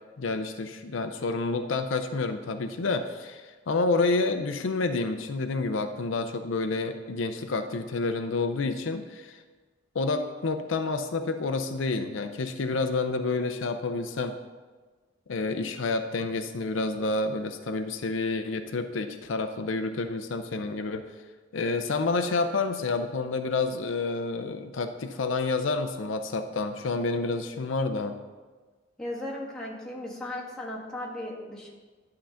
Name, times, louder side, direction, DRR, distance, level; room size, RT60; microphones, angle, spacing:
voice 1, 0.2-9.4 9.9-14.3 15.3-21.0 21.5-28.2, left 3 dB, 80° left, 8 dB, 0.5 m, -29 dB
voice 2, 29.0-31.7, left 1 dB, 5° left, -5 dB, 1.6 m, -36 dB
11.5 x 3.8 x 5.7 m, 1.3 s
head